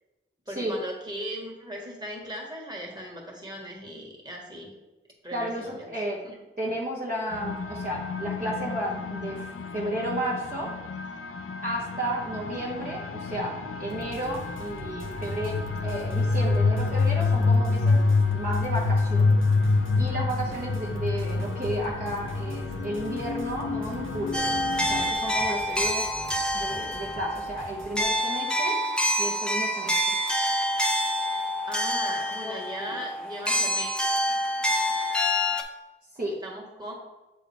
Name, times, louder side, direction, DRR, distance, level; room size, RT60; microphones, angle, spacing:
voice 1, 0.5-4.7 5.2-6.3 31.7-34.0 36.4-36.9, equal, 20° right, -2 dB, 1.6 m, -38 dB
voice 2, 5.3-6.2 6.6-10.7 11.6-13.5 13.8-18.0 18.3-19.4 19.6-24.4 24.9-26.1 26.5-28.8 29.2-30.2 32.4-32.5 32.8-33.0 36.1-36.3, right 1 dB, 40° right, -6 dB, 1.1 m, -33 dB
sound 1, 7.3-25.1, left 3 dB, 80° left, 0.5 m, -27 dB
sound 2, 13.9-28.0, right 2 dB, 70° right, 0.7 m, -45 dB
sound 3, 24.3-35.6, equal, 5° left, 0.6 m, -27 dB
7.5 x 3.8 x 3.4 m, 1.1 s
wide cardioid pair, 55°, 21 cm